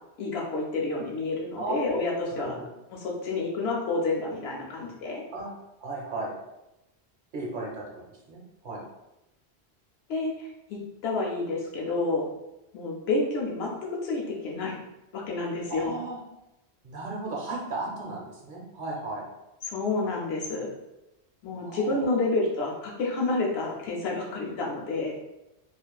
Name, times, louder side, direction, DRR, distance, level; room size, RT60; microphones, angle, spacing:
voice 1, 0.2-2.6 2.9-5.2 10.1-12.3 12.7-13.7 14.0-14.7 15.1-16.0 19.6-20.7 21.4-25.2, left 3 dB, 75° left, -2 dB, 0.9 m, -29 dB
voice 2, 1.6-1.9 2.3-2.6 5.3-5.5 5.8-6.3 7.3-8.8 15.7-16.2 16.8-19.2 21.6-22.1, right 2 dB, 55° right, -2 dB, 0.7 m, -35 dB
2.4 x 2.4 x 2.2 m, 0.93 s
omnidirectional pair, 1.1 m